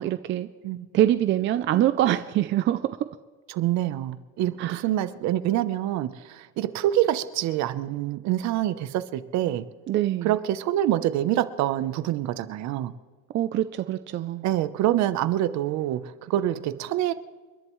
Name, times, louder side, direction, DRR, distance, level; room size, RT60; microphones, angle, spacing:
voice 1, 0.0-0.5 0.9-2.9 4.6-4.8 9.9-10.4 13.3-14.5, right 13 dB, 40° right, 11 dB, 0.4 m, -24 dB
voice 2, 3.5-9.7 10.2-12.9 14.4-17.1, right 13 dB, 60° right, 13 dB, 0.8 m, -26 dB
29.5 x 11.0 x 3.1 m, 1.3 s
cardioid pair, 155°, 31 cm